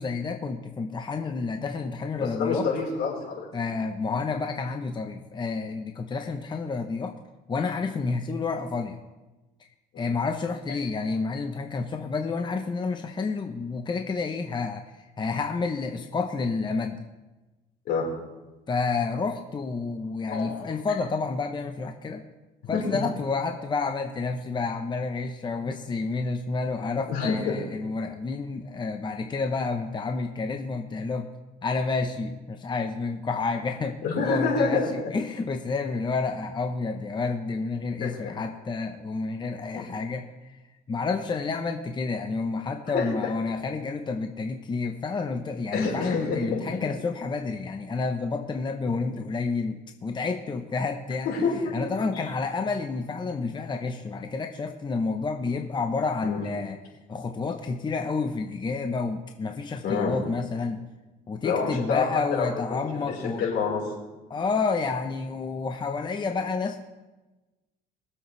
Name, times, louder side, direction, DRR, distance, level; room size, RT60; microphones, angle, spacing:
voice 1, 0.0-2.7 3.5-7.1 7.5-9.0 10.0-17.1 18.7-22.2 22.7-31.3 31.6-40.6 40.9-51.3 51.7-56.8 57.1-60.8 61.3-63.4 64.3-66.8, left 4 dB, 25° left, 5 dB, 0.8 m, -29 dB
voice 2, 2.2-3.5 9.9-10.1 17.9-18.1 20.3-20.7 22.7-22.8 27.1-27.5 34.0-35.1 38.0-38.3 39.7-39.8 42.9-43.1 45.7-46.9 49.1-49.2 51.2-51.8 56.2-56.4 59.8-60.2 61.4-62.1 62.3-63.8, left 5 dB, 75° left, -3 dB, 4.3 m, -28 dB
22.0 x 7.8 x 3.3 m, 1.1 s
cardioid pair, 110°, 17 cm